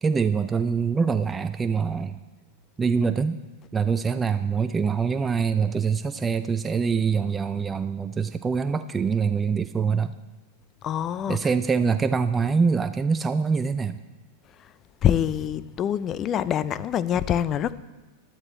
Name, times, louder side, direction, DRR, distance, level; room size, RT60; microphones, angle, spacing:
voice 1, 0.0-2.2 2.8-3.4 3.7-10.1 11.3-14.0, right 5 dB, 20° right, 10 dB, 0.5 m, -24 dB
voice 2, 10.8-11.4 15.0-17.7, left 9 dB, 35° left, 16 dB, 0.6 m, -25 dB
15.0 x 11.5 x 4.4 m, 1.2 s
hypercardioid pair, 120°, 0 cm